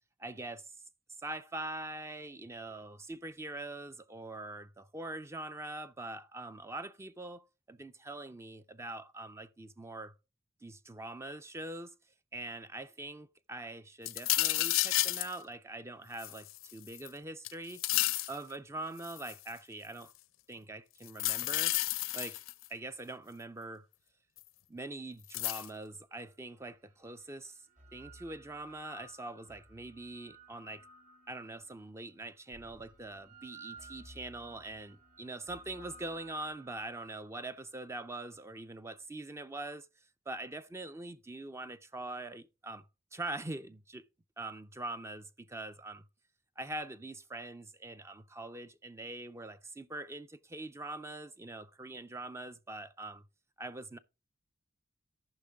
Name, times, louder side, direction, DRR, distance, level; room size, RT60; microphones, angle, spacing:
voice 1, 0.2-0.7 1.2-10.1 10.6-11.9 12.3-17.8 18.3-20.1 20.5-21.8 22.1-22.4 22.7-23.9 24.7-27.6 27.9-30.8 31.3-42.9 43.1-44.0 44.4-46.1 46.6-53.3 53.6-54.0, right 2 dB, 15° right, 0.4 m, -43 dB
sound 1, 14.1-15.3 16.2-17.1 17.5-18.4 19.0-19.5 21.1-22.7 24.4-24.5 25.3-25.7, left 17 dB, 80° left, 0.5 m, -31 dB
sound 2, 26.4-26.5 27.5-31.8 32.5-37.2, right 2 dB, 40° right, 2.1 m, -55 dB
13.5 x 5.7 x 3.5 m
head